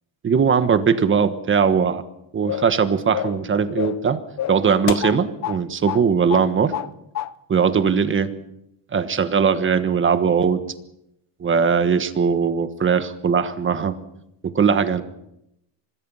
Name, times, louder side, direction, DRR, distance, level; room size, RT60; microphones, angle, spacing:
voice 1, 0.2-2.0 2.3-4.2 4.5-6.7 7.5-8.3 8.9-10.6 11.4-14.0 14.4-15.0, right 6 dB, 25° right, 11 dB, 1.4 m, -20 dB
sound 1, 2.5-2.8 3.1-3.4 3.8-4.1 4.4-5.6 5.9-6.0 6.3-6.9 7.1-7.3, left 11 dB, 40° left, 0.7 m, -28 dB
25.5 x 20.0 x 5.6 m, 0.82 s
cardioid pair, 150°, 44 cm